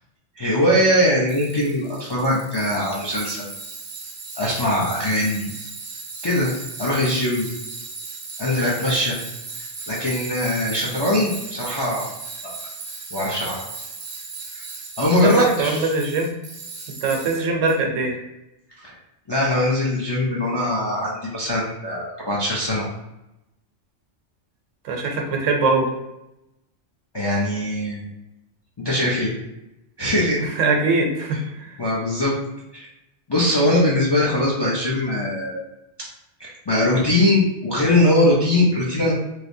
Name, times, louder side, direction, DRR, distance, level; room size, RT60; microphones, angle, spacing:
voice 1, 0.4-3.5 4.4-5.4 6.2-6.5 6.8-7.5 8.4-9.2 9.9-12.1 12.4-12.5 13.1-13.6 14.5-14.6 15.0-15.9 18.8-18.9 19.3-22.8 27.1-28.1 28.8-29.3 30.0-30.5 31.3-31.4 31.8-32.3 32.7-32.9 33.3-35.6 36.0-36.1 36.4-39.1, left 1 dB, 40° left, -4 dB, 0.4 m, -21 dB
Tools, 1.3-17.8, right 4 dB, 50° right, 0.6 m, -36 dB
voice 2, 15.2-16.3 17.0-18.1 24.8-25.9 30.6-31.8, right 3 dB, 85° right, 2 dB, 1.0 m, -22 dB
3.2 x 2.9 x 2.6 m, 0.91 s
omnidirectional pair, 1.3 m